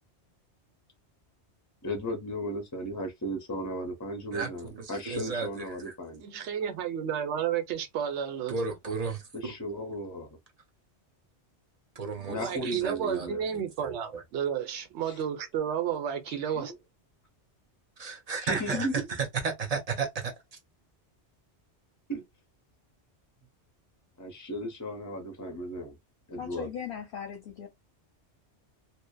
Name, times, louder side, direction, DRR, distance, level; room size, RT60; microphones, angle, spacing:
voice 1, 1.8-6.2 9.3-10.4 12.3-13.5 15.0-15.1 16.3-16.7 18.4-19.1 22.1-22.2 24.2-26.0 26.3-26.7, equal, 25° left, 0.5 m, -35 dB
voice 2, 4.3-5.9 8.5-9.5 12.0-13.3 13.8-14.2 18.0-20.3, right 5 dB, 45° right, 0.5 m, -34 dB
voice 3, 6.2-8.5 12.2-16.7, right 8 dB, 90° right, 0.9 m, -32 dB
voice 4, 26.4-27.7, left 7 dB, 65° left, 0.7 m, -38 dB
2.7 x 2.1 x 2.2 m
omnidirectional pair, 1.2 m